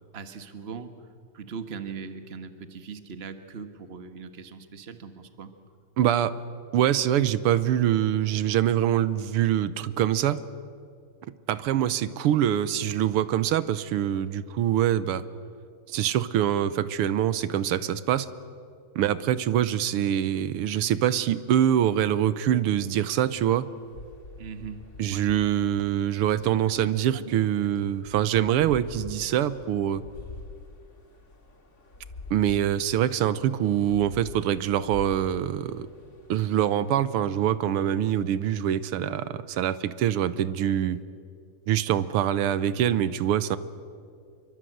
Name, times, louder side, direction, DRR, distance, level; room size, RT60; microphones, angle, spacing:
voice 1, 0.1-1.0 1.3-5.5 24.4-25.3 27.1-27.3, right 5 dB, 35° right, 9 dB, 1.3 m, -40 dB
voice 2, 6.0-6.4 6.7-10.4 11.5-15.2 15.9-18.3 18.9-23.7 25.0-30.0 32.3-35.9 36.3-41.0 41.7-43.6, right 11 dB, 90° right, 15 dB, 1.8 m, -24 dB
sound 1, 23.0-37.6, left 3 dB, 35° left, 2.4 m, -47 dB
27.0 x 24.0 x 7.9 m, 2.3 s
omnidirectional pair, 2.4 m